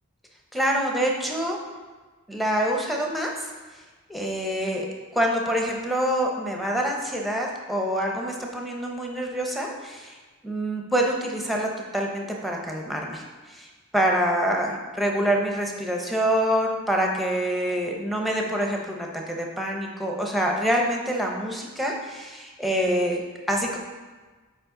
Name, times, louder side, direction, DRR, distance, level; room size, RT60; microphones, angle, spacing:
voice 1, 0.5-1.6 2.3-3.3 4.1-4.9 5.1-10.2 10.4-13.2 13.5-13.7 13.9-23.8, equal, ahead, 0 dB, 0.8 m, -26 dB
7.4 x 4.9 x 3.8 m, 1.3 s
head